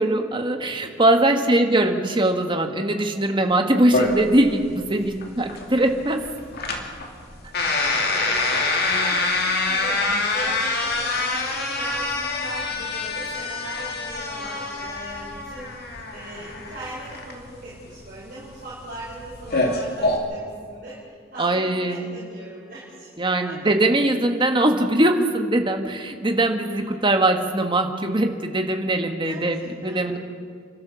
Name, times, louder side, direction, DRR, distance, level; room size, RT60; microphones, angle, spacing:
voice 1, 0.0-6.2 21.4-22.2 23.2-29.6 29.8-30.2, right 1 dB, 25° right, 5 dB, 1.5 m, -21 dB
sound 1, 3.9-20.2, left 3 dB, 50° left, 2.5 m, -26 dB
voice 2, 8.1-8.5 8.8-23.1 23.5-23.6 26.6-27.0 29.2-30.2, right 1 dB, 50° right, -7 dB, 5.0 m, -40 dB
30.0 x 12.5 x 7.1 m, 2.1 s
head